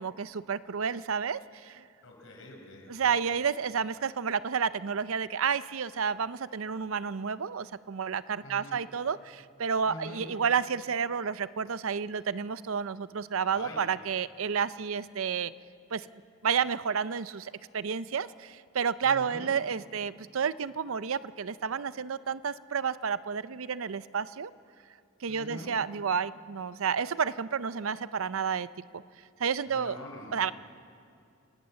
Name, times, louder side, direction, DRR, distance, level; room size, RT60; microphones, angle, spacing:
voice 1, 0.0-1.8 2.9-15.5 15.9-16.1 16.4-24.5 25.2-28.7 28.9-29.0 29.4-30.0 30.3-30.5, right 6 dB, 70° right, 16 dB, 0.6 m, -30 dB
voice 2, 2.0-3.2 8.4-8.8 9.9-10.2 13.5-13.8 19.0-19.5 25.3-25.7 29.7-30.3, left 1 dB, 65° left, 2 dB, 5.1 m, -45 dB
30.0 x 18.0 x 7.6 m, 2.5 s
head